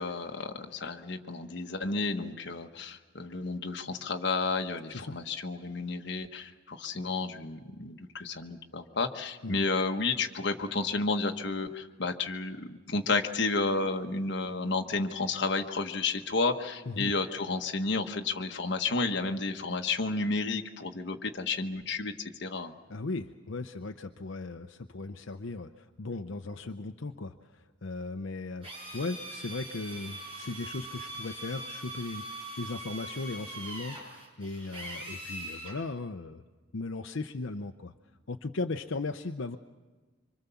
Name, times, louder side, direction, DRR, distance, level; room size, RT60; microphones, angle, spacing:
voice 1, 0.0-22.1 22.4-22.7, left 3 dB, 60° left, 5 dB, 1.4 m, -31 dB
voice 2, 22.9-28.7 28.9-36.4 36.7-37.9 38.3-39.6, left 3 dB, 85° left, 6 dB, 0.8 m, -37 dB
Drill, 28.6-35.8, right 2 dB, 30° right, 7.0 m, -42 dB
25.5 x 25.0 x 7.1 m, 1.4 s
head